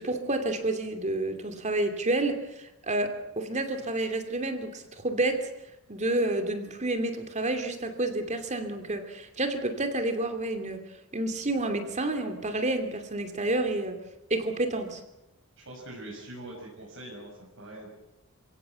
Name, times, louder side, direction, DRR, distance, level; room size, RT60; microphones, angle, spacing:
voice 1, 0.0-5.5 5.9-10.8 11.1-14.0 14.3-15.0, right 2 dB, 35° right, 7 dB, 2.7 m, -29 dB
voice 2, 15.6-17.9, right 1 dB, 60° right, -2 dB, 6.2 m, -43 dB
28.5 x 17.0 x 8.1 m, 0.91 s
head